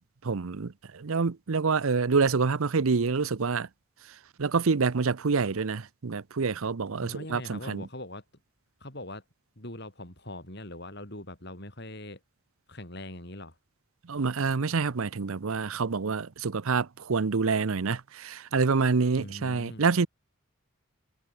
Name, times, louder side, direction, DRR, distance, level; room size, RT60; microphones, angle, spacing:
voice 1, 0.2-3.7 4.4-7.9 14.1-20.1, right 4 dB, 75° right, 0.7 m, -27 dB
voice 2, 7.0-8.2 8.8-9.2 9.6-12.2 12.7-13.6 19.2-19.8, left 1 dB, 50° left, 7.9 m, -41 dB
head